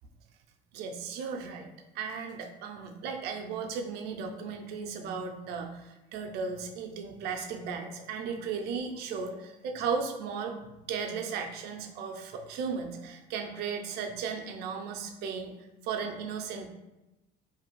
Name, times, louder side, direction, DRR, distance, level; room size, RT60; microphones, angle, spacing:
voice 1, 0.7-1.7 1.9-10.6 10.9-15.5 15.8-16.7, right 5 dB, 70° right, 4 dB, 0.5 m, -35 dB
2.6 x 2.3 x 3.0 m, 0.97 s
cardioid pair, 120°, 17 cm